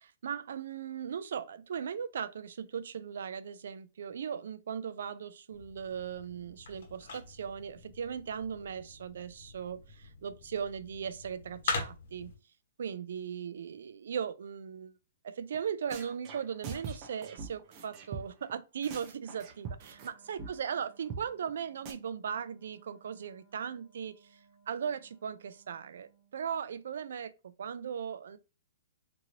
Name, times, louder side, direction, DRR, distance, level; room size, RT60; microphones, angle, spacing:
voice 1, 0.0-12.3 12.8-14.9 15.2-19.7 20.0-24.2 24.7-28.4, right 7 dB, 75° right, 0.3 m, -38 dB
sound 1, 5.5-12.3, left 4 dB, 60° left, 1.0 m, -42 dB
sound 2, 15.5-15.6 15.9-18.5 18.8-20.1 20.4-20.5 20.8-20.9 21.1-21.2 21.5-21.6 21.8-21.9, right 5 dB, 30° right, 0.6 m, -42 dB
Wind instrument woodwind instrument, 19.8-26.4, right 6 dB, 15° right, 1.3 m, -65 dB
2.9 x 2.6 x 2.7 m
hypercardioid pair, 155°, 0 cm